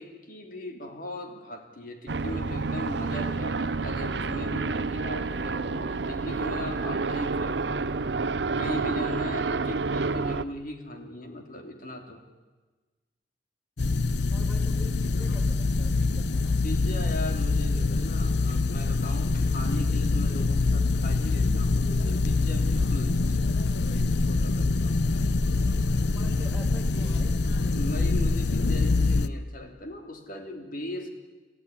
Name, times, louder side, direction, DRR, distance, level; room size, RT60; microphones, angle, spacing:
voice 1, 0.0-8.3 8.6-12.2 16.6-25.6 27.7-31.1, left 1 dB, 55° left, 4 dB, 3.0 m, -39 dB
sound 1, 2.1-10.4, right 3 dB, 75° right, 0.8 m, -29 dB
sound 2, 13.8-29.3, left 3 dB, 70° left, 0.8 m, -25 dB
voice 2, 14.3-16.6 26.1-27.4, equal, ahead, 1 dB, 5.1 m, -46 dB
27.5 x 15.0 x 9.8 m, 1.3 s
head